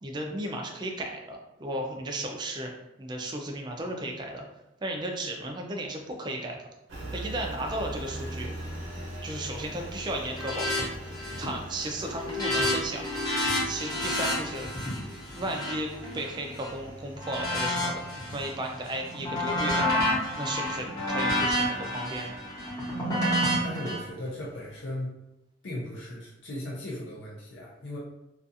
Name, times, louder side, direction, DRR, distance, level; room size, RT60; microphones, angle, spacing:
voice 1, 0.0-2.7 3.0-4.4 4.8-6.6 7.1-8.5 9.2-10.9 11.4-13.1 13.6-14.7 15.3-18.0 18.3-20.0 20.3-22.4, right 1 dB, 25° right, 2 dB, 0.4 m, -34 dB
Engine, 6.9-24.8, right 1 dB, 90° right, 0.7 m, -43 dB
sound 1, 10.3-10.8 11.1-11.5 11.9-16.7 17.2-18.5 18.9-24.0, left 1 dB, 20° left, 0.8 m, -29 dB
voice 2, 23.6-25.1 25.6-28.0, left 1 dB, 70° left, -5 dB, 0.6 m, -37 dB
2.4 x 2.4 x 2.6 m, 0.91 s
head